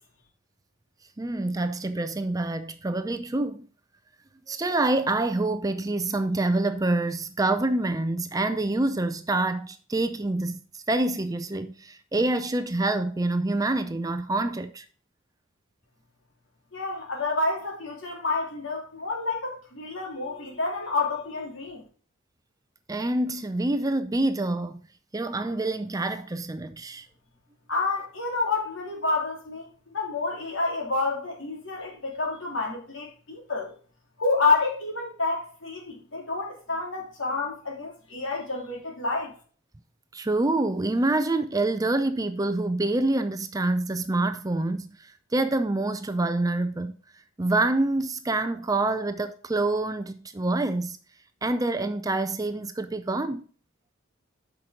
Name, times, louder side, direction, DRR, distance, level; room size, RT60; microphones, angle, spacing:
voice 1, 1.2-3.7 4.5-14.9 22.9-24.8 25.1-27.1 40.1-47.0 47.4-51.0 51.4-53.5, right 2 dB, 15° right, 0.5 m, -26 dB
voice 2, 16.7-21.8 27.7-33.7 34.2-39.3, left 3 dB, 65° left, 3.1 m, -29 dB
8.2 x 6.0 x 3.8 m
head